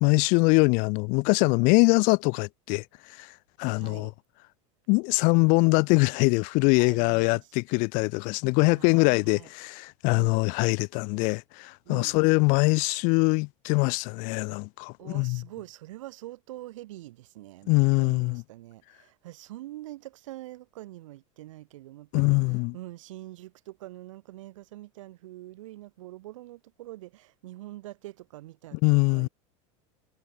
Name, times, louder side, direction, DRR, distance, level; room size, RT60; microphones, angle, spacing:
voice 1, 0.0-3.3 3.6-4.1 4.9-15.4 17.7-18.4 22.1-22.7 28.7-29.3, left 31 dB, 55° left, 0.6 m, -23 dB
voice 2, 3.7-4.1 6.8-7.5 8.7-9.5 10.1-10.4 11.8-12.2 15.0-29.3, right 16 dB, 85° right, 3.3 m, -44 dB
supercardioid pair, 130°, 16 cm